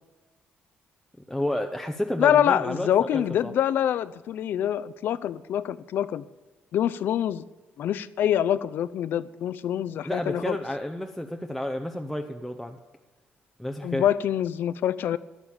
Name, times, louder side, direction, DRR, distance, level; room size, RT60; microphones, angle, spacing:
voice 1, 1.3-2.9 3.1-3.5 10.0-12.8 13.6-14.0, left 1 dB, ahead, 3 dB, 0.7 m, -30 dB
voice 2, 2.2-6.2 6.7-7.4 7.8-10.6 13.8-15.2, left 10 dB, 60° left, 16 dB, 0.6 m, -25 dB
15.0 x 11.5 x 7.2 m, 1.2 s
cardioid pair, 150°, 4 cm